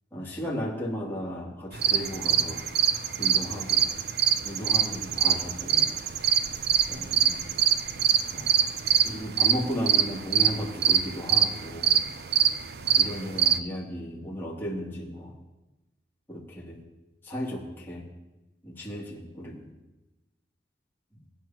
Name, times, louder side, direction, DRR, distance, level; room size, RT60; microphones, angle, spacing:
voice 1, 0.1-2.6 3.2-3.9 4.4-5.9 6.9-7.4 8.3-8.5 9.0-11.9 12.8-15.3 16.3-16.8 17.3-18.1 18.6-19.6, equal, 15° left, -6 dB, 2.8 m, -35 dB
sound 1, 1.7-13.6, right 9 dB, 60° right, 0.6 m, -24 dB
23.0 x 9.7 x 3.0 m, 1.0 s
head